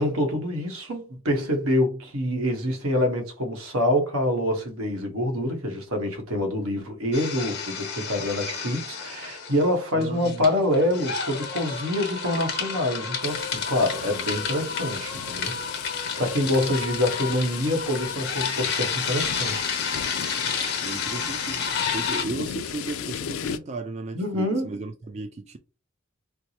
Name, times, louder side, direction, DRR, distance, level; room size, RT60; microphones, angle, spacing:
voice 1, 0.0-15.5 16.2-19.7 24.1-24.8, left 1 dB, 90° right, 1.0 m, -26 dB
sound 1, 7.1-9.7 10.0-22.2, left 5 dB, 55° left, 0.9 m, -31 dB
voice 2, 9.9-10.5 16.4-16.7 20.8-25.6, right 2 dB, 30° right, 0.3 m, -35 dB
sound 2, 13.2-23.6, left 9 dB, 70° left, 0.3 m, -36 dB
4.5 x 2.0 x 2.8 m
head